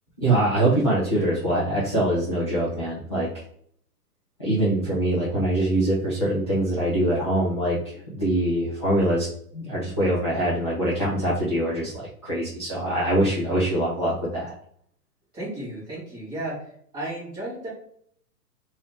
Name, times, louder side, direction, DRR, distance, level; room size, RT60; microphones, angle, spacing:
voice 1, 0.2-3.3 4.4-9.3 9.5-11.9 12.2-14.5, right 1 dB, 20° left, -12 dB, 0.4 m, -23 dB
voice 2, 15.3-16.6 16.9-17.7, right 1 dB, 10° right, -10 dB, 1.4 m, -33 dB
3.3 x 2.7 x 3.1 m, 0.64 s
hypercardioid pair, 170°, 47 cm